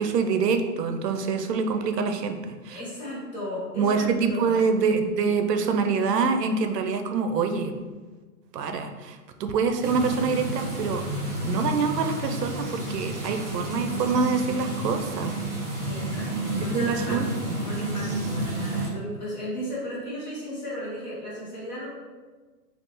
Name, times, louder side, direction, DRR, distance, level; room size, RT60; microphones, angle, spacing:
voice 1, 0.0-2.8 3.7-7.7 8.5-11.0 11.4-15.3 16.7-17.6, right 5 dB, 85° right, 6 dB, 0.6 m, -25 dB
voice 2, 2.7-4.6 15.9-21.9, equal, 30° left, -7 dB, 0.7 m, -35 dB
sound 1, 9.8-18.9, right 1 dB, 45° right, 1.4 m, -31 dB
3.4 x 2.4 x 2.9 m, 1.3 s
hypercardioid pair, 170°, 47 cm